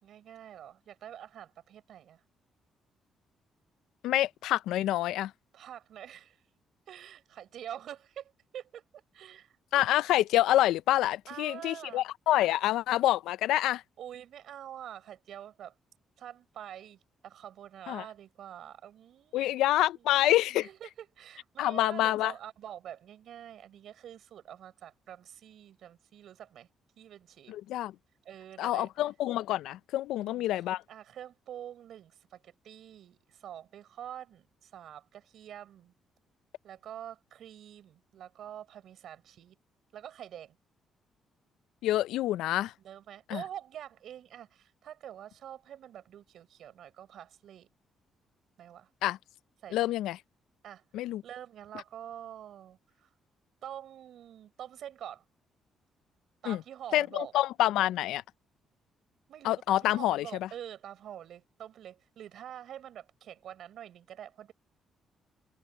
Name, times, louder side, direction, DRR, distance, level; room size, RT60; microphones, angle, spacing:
voice 1, 0.0-2.2 5.5-6.4 6.9-8.8 9.1-9.5 11.3-12.0 14.0-15.7 16.2-19.6 20.0-20.1 20.5-26.7 27.0-27.6 28.3-28.9 30.2-30.5 30.9-35.9 36.6-39.6 39.9-40.6 42.8-47.7 48.6-48.9 49.6-49.9 50.6-53.1 53.6-55.2 56.4-57.3 59.3-64.5, right 10 dB, 70° right, 5.5 m, -46 dB
voice 2, 4.0-5.3 9.7-13.8 17.9-18.0 19.3-20.7 21.6-22.3 27.5-27.9 28.6-30.8 41.8-42.7 43.3-43.4 49.0-49.2 49.7-50.2 50.9-51.2 56.5-56.6 56.9-58.2 59.4-60.5, left 14 dB, 90° left, 0.5 m, -27 dB
cardioid pair, 90°, 0 cm